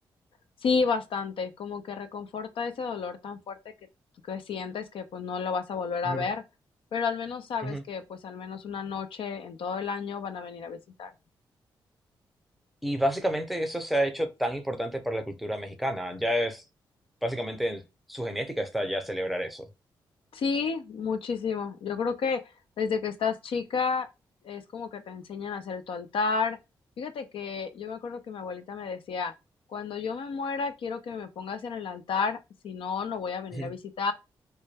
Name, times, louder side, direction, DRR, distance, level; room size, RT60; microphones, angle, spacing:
voice 1, 0.6-3.6 4.3-6.4 6.9-11.1 20.3-22.4 22.8-24.1 24.4-26.6 27.0-29.3 29.7-32.4 32.6-34.1, left 5 dB, 65° left, 0.4 m, -31 dB
voice 2, 12.8-16.6 17.2-17.8 18.1-19.6 33.5-33.7, equal, ahead, 0.7 m, -29 dB
2.1 x 2.1 x 3.3 m
supercardioid pair, 45°, 10 cm